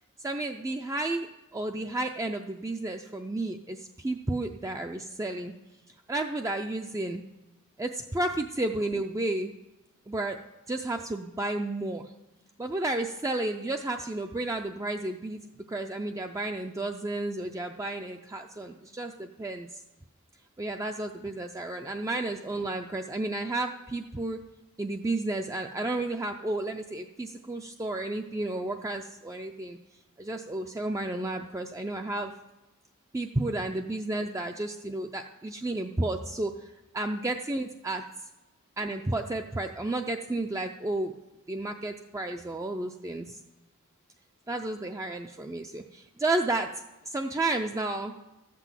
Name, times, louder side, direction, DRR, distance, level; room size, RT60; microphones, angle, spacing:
voice 1, 0.2-5.5 6.1-7.2 7.8-9.5 10.1-10.4 10.7-12.1 12.6-15.4 15.7-19.8 20.6-24.4 24.8-29.8 30.2-32.3 33.1-38.0 38.8-41.1 41.5-43.4 44.5-46.7 47.1-48.1, right 2 dB, 15° right, 4 dB, 0.4 m, -32 dB
13.5 x 6.0 x 7.3 m, 1.0 s
head